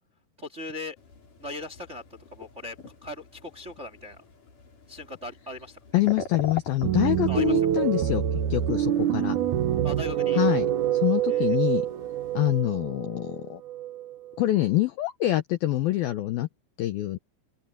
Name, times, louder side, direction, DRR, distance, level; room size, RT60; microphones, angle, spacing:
voice 1, 0.4-0.9 1.4-2.0 2.3-2.8 3.0-4.2 4.9-5.8 7.3-7.5 9.8-10.4 11.3-11.6, left 1 dB, 25° right, 1.5 m, -38 dB
sound 1, 1.0-12.6, left 4 dB, 45° left, 6.3 m, -45 dB
voice 2, 5.9-8.2 8.5-9.4 10.4-11.9 12.3-13.6 14.4-16.5 16.8-17.2, left 16 dB, 75° left, 2.2 m, -25 dB
sound 2, 6.8-14.3, right 10 dB, 80° right, 1.7 m, -26 dB
open air
omnidirectional pair, 5.4 m